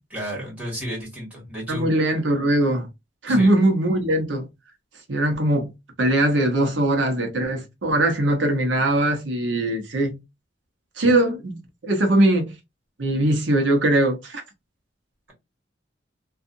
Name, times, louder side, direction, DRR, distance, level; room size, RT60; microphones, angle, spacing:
voice 1, 0.1-1.9 3.3-3.5 11.0-11.1, equal, 10° right, 1.6 m, -32 dB
voice 2, 1.7-2.9 3.2-4.5 5.1-5.7 6.0-10.2 11.0-11.6 11.8-12.6 13.0-14.4, right 1 dB, 70° right, 0.8 m, -21 dB
2.6 x 2.4 x 2.5 m
head